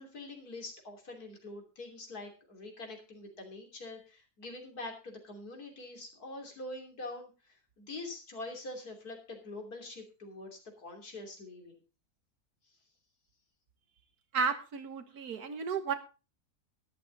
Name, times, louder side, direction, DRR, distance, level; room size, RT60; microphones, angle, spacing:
voice 1, 0.0-11.8 15.1-15.2, left 2 dB, 80° left, 3 dB, 3.6 m, -45 dB
voice 2, 14.3-15.9, right 5 dB, 85° right, 9 dB, 1.9 m, -33 dB
12.5 x 11.5 x 4.0 m, 0.31 s
omnidirectional pair, 1.6 m